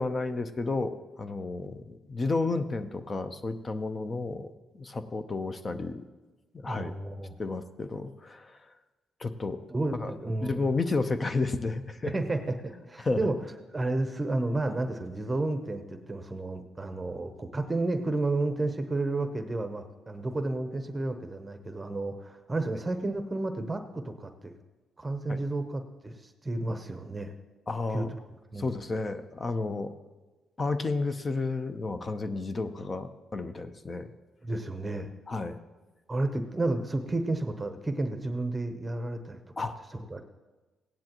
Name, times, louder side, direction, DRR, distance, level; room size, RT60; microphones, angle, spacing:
voice 1, 0.0-6.0 6.5-6.9 7.4-8.6 9.2-9.7 10.0-10.1 10.4-12.1 13.0-13.3 25.3-25.4 27.7-28.1 28.6-29.9 30.6-34.1 35.3-35.6 39.6-39.7, left 3 dB, 30° left, 10 dB, 0.7 m, -32 dB
voice 2, 6.7-7.4 9.7-10.6 12.0-13.4 13.7-24.5 25.0-27.3 27.9-28.2 28.5-28.7 34.4-35.1 36.1-39.4 40.1-40.2, right 2 dB, 20° right, 7 dB, 0.8 m, -31 dB
16.5 x 10.0 x 3.0 m, 1.2 s
cardioid pair, 90°, 0 cm